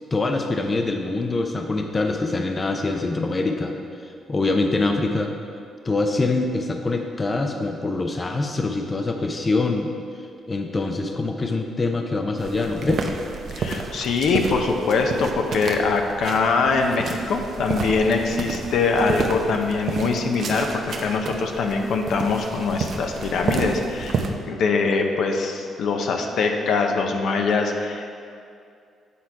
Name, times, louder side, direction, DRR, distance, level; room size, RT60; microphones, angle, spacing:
voice 1, 0.1-3.8 4.3-5.3 5.8-9.9 10.5-13.1, left 3 dB, 30° left, 4 dB, 0.6 m, -24 dB
sound 1, 12.4-24.3, right 4 dB, 60° right, 0.7 m, -31 dB
voice 2, 13.5-28.1, left 4 dB, 70° left, 3 dB, 0.7 m, -23 dB
8.3 x 4.3 x 4.7 m, 2.4 s
cardioid pair, 90°, 0 cm